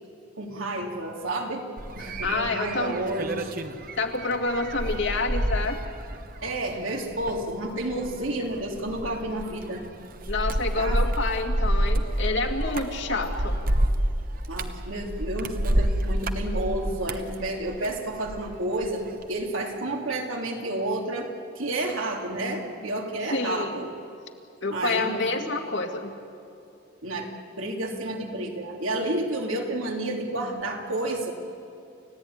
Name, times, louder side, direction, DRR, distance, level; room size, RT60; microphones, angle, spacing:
voice 1, 0.4-1.6 1.9-3.6 6.4-9.8 10.7-11.0 14.5-21.3 21.5-23.9 24.7-25.5 27.0-27.3 27.6-31.3, right 1 dB, 85° right, 1 dB, 3.0 m, -30 dB
sound 1, 1.8-18.5 18.8-19.3, right 1 dB, 45° right, 1.1 m, -29 dB
voice 2, 2.2-3.0 4.0-5.8 10.3-13.6 23.3-23.9 24.6-26.1, left 3 dB, 60° left, 3 dB, 2.3 m, -28 dB
29.5 x 16.0 x 9.7 m, 2.6 s
head